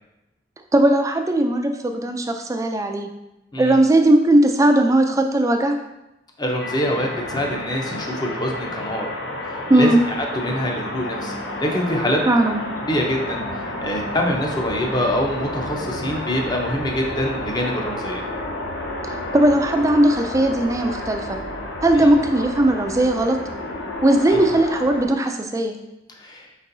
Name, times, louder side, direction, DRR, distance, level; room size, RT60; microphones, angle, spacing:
voice 1, 0.7-3.1 3.6-5.8 9.7-10.0 12.3-12.6 19.0-21.4 21.8-23.4 24.0-25.7, right 1 dB, 20° right, 5 dB, 0.4 m, -18 dB
voice 2, 6.4-9.1 9.4-12.2 12.8-18.2 21.9-22.1 24.3-24.4 26.2-26.5, equal, 25° left, 1 dB, 0.6 m, -25 dB
sound 1, 6.6-25.1, left 1 dB, 80° left, 0.7 m, -31 dB
4.5 x 4.1 x 2.6 m, 0.93 s
head